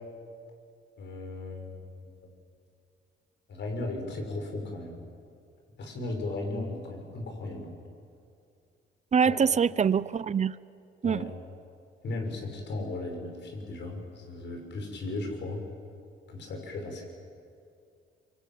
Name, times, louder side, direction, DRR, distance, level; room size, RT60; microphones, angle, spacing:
voice 1, 1.0-2.3 3.5-5.0 5.8-7.7 9.2-9.4 11.0-11.3 12.0-15.6 16.3-17.0, left 2 dB, 65° left, 2 dB, 6.6 m, -36 dB
voice 2, 9.1-10.6 11.0-11.3, right 7 dB, 35° right, 18 dB, 0.7 m, -24 dB
25.5 x 24.5 x 9.3 m, 2.4 s
cardioid pair, 90°, 20 cm